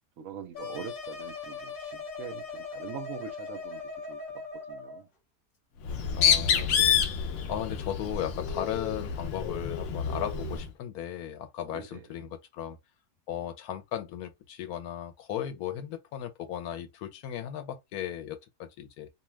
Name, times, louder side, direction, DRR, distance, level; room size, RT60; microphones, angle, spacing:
voice 1, 0.2-3.8 4.1-4.4 4.7-5.1 11.7-12.0, right 7 dB, 70° right, 0.9 m, -43 dB
sound 1, 0.5-5.0, left 4 dB, 45° left, 0.9 m, -40 dB
Bird, 5.8-10.7, left 7 dB, 65° left, 0.8 m, -28 dB
voice 2, 6.2-7.1 7.5-12.8 13.3-19.1, left 10 dB, 80° left, 1.1 m, -36 dB
2.6 x 2.3 x 3.1 m
omnidirectional pair, 1.6 m